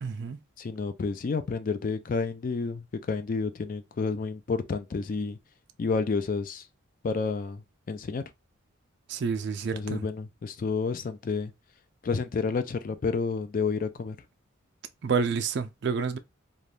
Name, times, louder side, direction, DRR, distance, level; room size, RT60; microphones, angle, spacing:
voice 1, 0.0-0.4 9.1-10.0 15.0-16.2, right 5 dB, 55° right, 0.4 m, -29 dB
voice 2, 0.6-5.4 5.8-6.7 7.0-7.6 7.9-8.2 9.7-11.5 12.0-14.2, left 4 dB, 40° left, 0.3 m, -30 dB
2.6 x 2.2 x 3.2 m
head